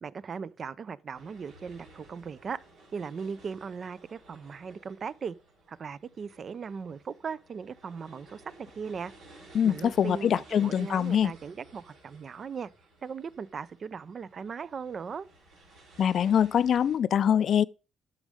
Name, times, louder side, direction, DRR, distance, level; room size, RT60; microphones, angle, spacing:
voice 1, 0.0-2.6 2.9-5.4 5.7-9.1 9.6-12.7 13.0-15.3, right 6 dB, 45° right, 0.5 m, -38 dB
sound 1, 1.1-17.0, right 2 dB, 85° right, 4.7 m, -56 dB
voice 2, 9.5-11.3 16.0-17.6, left 8 dB, 60° left, 0.4 m, -24 dB
9.8 x 6.4 x 5.0 m
cardioid pair, 90°, 0 cm